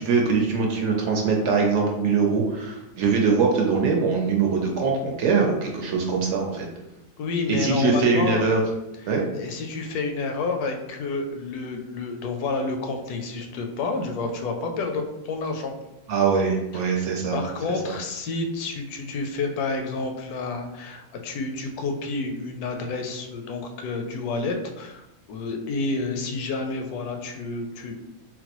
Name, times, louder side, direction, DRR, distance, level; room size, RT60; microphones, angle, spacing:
voice 1, 0.0-6.7 7.5-8.6 9.1-9.2 16.1-17.4 17.8-17.9, right 5 dB, 65° right, 0 dB, 0.8 m, -22 dB
voice 2, 7.2-8.5 9.4-15.7 16.7-16.9 17.3-27.9, left 3 dB, 85° left, 4 dB, 1.1 m, -29 dB
3.9 x 2.1 x 2.9 m, 0.92 s
omnidirectional pair, 1.6 m